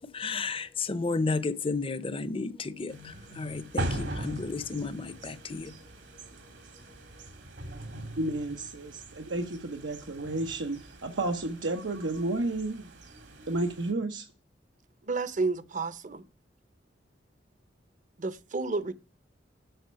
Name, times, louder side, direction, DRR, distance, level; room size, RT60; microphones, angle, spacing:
voice 1, 0.1-5.7, left 3 dB, 30° left, 0.6 m, -32 dB
sound 1, 2.9-13.9, right 1 dB, 70° right, 1.8 m, -41 dB
voice 2, 8.2-12.9 13.5-14.2, right 2 dB, 90° right, 1.0 m, -32 dB
voice 3, 15.1-16.2 18.2-18.9, right 3 dB, 45° right, 0.8 m, -31 dB
7.9 x 5.3 x 6.9 m
head